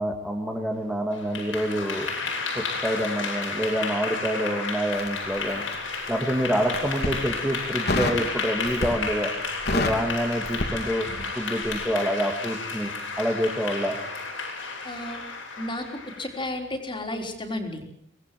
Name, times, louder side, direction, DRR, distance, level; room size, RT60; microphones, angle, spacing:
voice 1, 0.0-2.1 2.5-5.7 6.1-9.3 9.7-11.1 11.4-12.9 13.2-14.0, equal, 5° right, 0 dB, 2.2 m, -27 dB
Clapping / Applause, 1.1-16.4, left 4 dB, 85° left, 7.6 m, -32 dB
Crackle, 4.9-6.1 6.6-7.2 7.9-8.3 8.6-9.1 9.4-11.3 11.6-11.8, left 2 dB, 55° left, 3.1 m, -28 dB
voice 2, 14.8-15.2 15.6-15.9 16.2-17.9, left 1 dB, 25° left, 4 dB, 3.9 m, -32 dB
25.0 x 19.5 x 7.6 m, 0.66 s
head